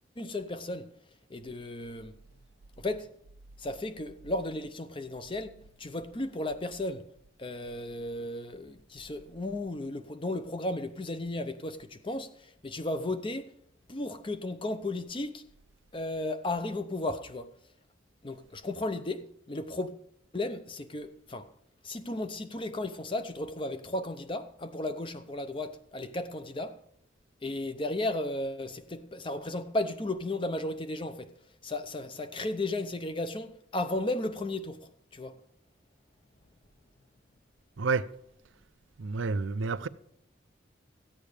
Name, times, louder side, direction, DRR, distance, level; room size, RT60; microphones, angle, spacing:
voice 1, 0.2-0.9 1.3-2.2 2.8-3.1 3.6-5.5 5.8-7.1 7.4-13.5 13.9-15.4 15.9-17.5 18.2-19.9 20.3-21.5 21.8-26.8 27.4-31.3 31.6-35.4, left 2 dB, 25° left, 0.6 m, -34 dB
voice 2, 39.0-39.9, right 4 dB, 80° right, 0.5 m, -29 dB
14.5 x 8.8 x 5.0 m
head